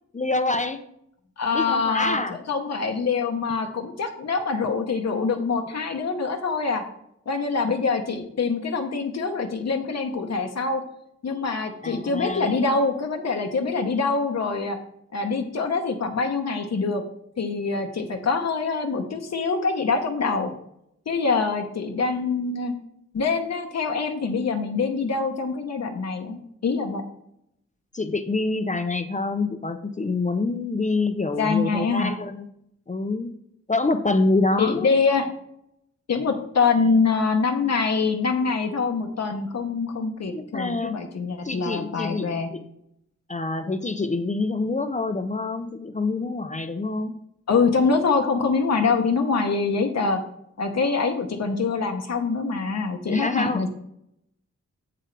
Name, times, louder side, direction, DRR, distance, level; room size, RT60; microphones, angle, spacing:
voice 1, 0.1-0.8 1.5-2.4 11.8-12.5 27.9-32.5 32.9-33.3 33.7-34.9 40.3-41.0 41.4-42.6 43.3-47.1 53.1-53.7, left 3 dB, 25° left, 7 dB, 0.5 m, -26 dB
voice 2, 1.4-6.8 7.3-10.8 11.2-14.8 15.1-17.0 17.4-20.5 21.1-22.7 23.1-27.0 31.4-32.1 34.6-35.3 36.1-42.5 47.5-50.2 50.6-53.7, left 4 dB, 60° left, 3 dB, 0.8 m, -24 dB
7.8 x 7.6 x 3.3 m, 0.75 s
wide cardioid pair, 175°, 29 cm